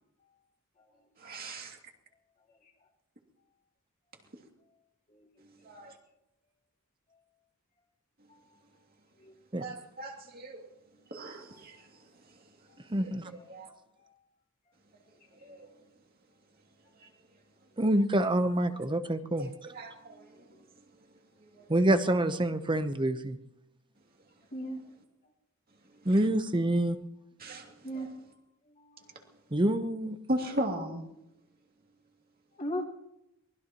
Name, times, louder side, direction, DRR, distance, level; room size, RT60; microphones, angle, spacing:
voice 1, 1.2-1.8 5.6-6.0 9.6-10.7 11.1-12.4 12.8-13.7 15.4-15.7 17.0-17.1 19.4-20.6 21.4-21.8 26.0-26.1 27.4-28.1 30.3-31.0, right 1 dB, 45° right, 2.5 m, -38 dB
voice 2, 12.9-13.3 17.8-19.5 21.7-23.4 26.0-27.0 29.5-30.2, right 1 dB, 20° right, 0.8 m, -26 dB
voice 3, 24.5-24.8 27.8-28.1 28.8-29.1 32.5-32.8, equal, 40° left, 2.1 m, -37 dB
23.5 x 20.0 x 3.0 m
head